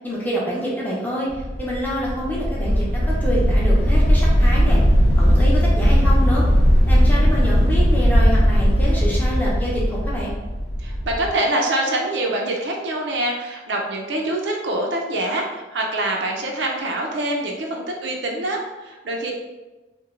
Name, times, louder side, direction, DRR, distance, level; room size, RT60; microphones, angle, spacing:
voice 1, 0.0-4.8 5.2-6.4 6.9-10.3, equal, 10° left, -5 dB, 0.6 m, -26 dB
sound 1, 1.3-11.3, equal, 70° left, 0.5 m, -17 dB
voice 2, 10.8-19.3, right 1 dB, 75° right, 0 dB, 0.4 m, -25 dB
2.9 x 2.1 x 2.4 m, 1.1 s
head